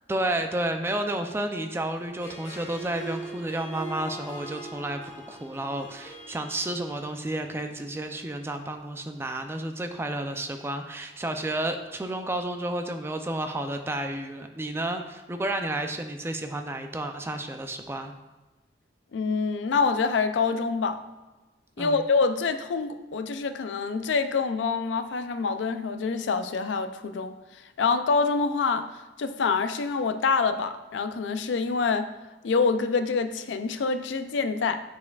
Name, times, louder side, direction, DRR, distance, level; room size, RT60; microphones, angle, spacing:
voice 1, 0.1-5.0 5.3-18.1 21.8-22.0, right 1 dB, 15° right, 6 dB, 0.4 m, -31 dB
Harp, 2.1-7.5, right 2 dB, 35° left, 2.0 m, -41 dB
voice 2, 19.1-21.0 21.8-27.3 27.8-28.9 29.2-32.1 32.4-34.8, left 4 dB, 85° left, 10 dB, 0.4 m, -26 dB
9.5 x 4.3 x 2.3 m, 1.1 s
head